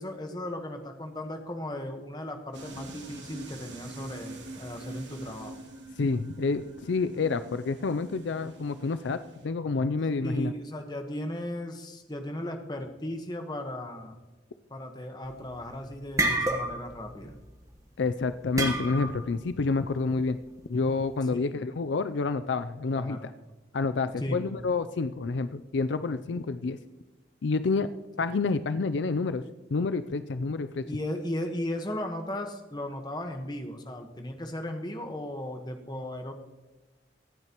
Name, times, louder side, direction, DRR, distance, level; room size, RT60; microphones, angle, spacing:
voice 1, 0.0-5.6 10.2-14.2 14.7-17.4 21.3-21.6 22.9-23.3 24.2-24.4 30.8-36.3, left 1 dB, 20° left, 5 dB, 1.2 m, -36 dB
sound 1, 2.5-9.5, right 2 dB, 75° right, 2.9 m, -45 dB
voice 2, 6.0-10.5 18.0-20.4 20.7-23.2 23.7-26.8 27.4-27.9 28.2-29.4 29.7-30.8, left 4 dB, 75° left, 12 dB, 0.5 m, -28 dB
sound 2, 15.3-15.6 15.9-17.0 17.3-17.6 18.6-19.3, right 1 dB, 20° right, 1.2 m, -28 dB
24.0 x 8.9 x 3.0 m, 1.2 s
head